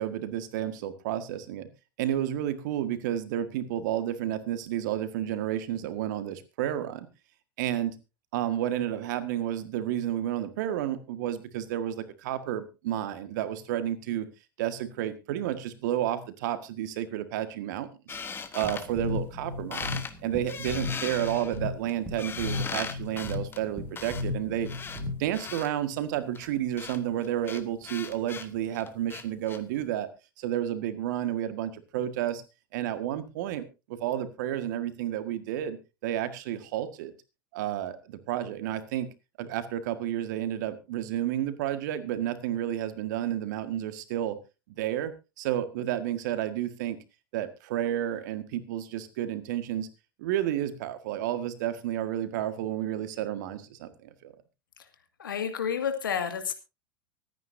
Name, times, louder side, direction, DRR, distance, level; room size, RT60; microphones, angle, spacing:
voice 1, 0.0-1.7 2.0-7.1 7.6-8.0 8.3-14.3 14.6-18.2 18.5-24.7 25.2-30.1 30.4-32.4 32.7-35.8 36.0-37.1 37.5-39.1 39.4-44.4 44.8-47.0 47.3-49.9 50.2-54.3, right 11 dB, 60° right, 11 dB, 1.7 m, -31 dB
sound 1, 18.1-19.4 19.7-20.1 20.5-25.7 26.3-29.6, left 5 dB, 20° left, 1.3 m, -39 dB
sound 2, 18.6-25.5, left 3 dB, ahead, 2.1 m, -36 dB
voice 2, 55.2-56.5, left 7 dB, 75° left, 8 dB, 2.1 m, -30 dB
24.5 x 9.4 x 2.7 m, 0.28 s
figure-of-eight pair, 90°, 11 cm